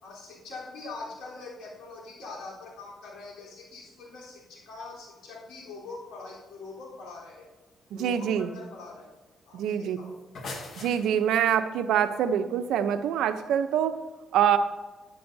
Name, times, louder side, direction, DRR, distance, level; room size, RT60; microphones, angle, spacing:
voice 1, 0.0-7.5 7.9-9.1 9.5-10.2, left 3 dB, 85° left, -5 dB, 3.7 m, -43 dB
voice 2, 7.9-8.5 9.5-10.0 10.8-14.0 14.3-14.6, right 9 dB, 85° right, 10 dB, 0.7 m, -25 dB
sound 1, 10.0-11.6, left 3 dB, 60° left, 1.8 m, -41 dB
12.5 x 10.5 x 2.7 m, 1.2 s
cardioid pair, 90°, 0 cm